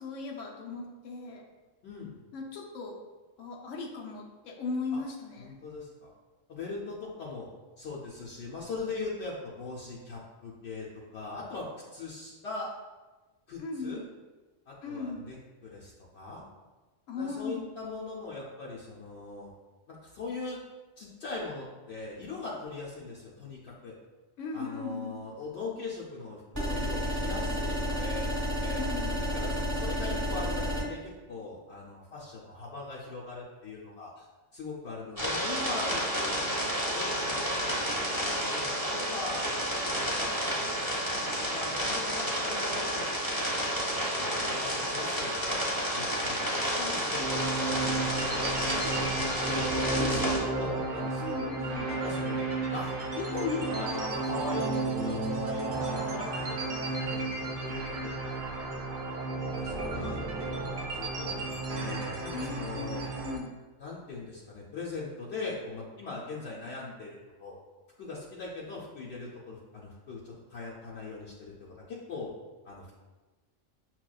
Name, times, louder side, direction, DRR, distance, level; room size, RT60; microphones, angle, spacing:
voice 1, 0.0-1.5 2.3-3.0 3.4-5.6 13.6-14.0 14.8-15.3 17.1-17.7 24.4-25.2 28.8-29.3 49.9-50.3 51.2-51.9 62.3-63.5, left 4 dB, 90° left, -1 dB, 1.1 m, -38 dB
voice 2, 1.8-2.1 4.9-5.0 5.4-6.1 6.5-7.5 7.8-10.9 11.1-11.7 11.9-12.7 13.5-14.0 14.7-16.4 17.2-19.5 19.9-20.6 21.0-24.0 24.5-28.4 28.6-28.8 29.3-34.2 34.5-43.0 44.1-52.9 53.2-56.3 56.6-56.8 57.1-57.3 57.6-58.1 59.4-60.5 60.9-63.0 63.8-67.6 68.0-72.3 72.6-72.9, left 3 dB, 65° left, -5 dB, 0.8 m, -40 dB
sound 1, 26.5-30.8, equal, 15° right, 0.9 m, -31 dB
sound 2, 35.2-50.4, equal, 20° left, 0.8 m, -31 dB
sound 3, 47.2-63.4, right 3 dB, 60° right, 0.5 m, -33 dB
5.9 x 2.2 x 2.2 m, 1.2 s
omnidirectional pair, 1.3 m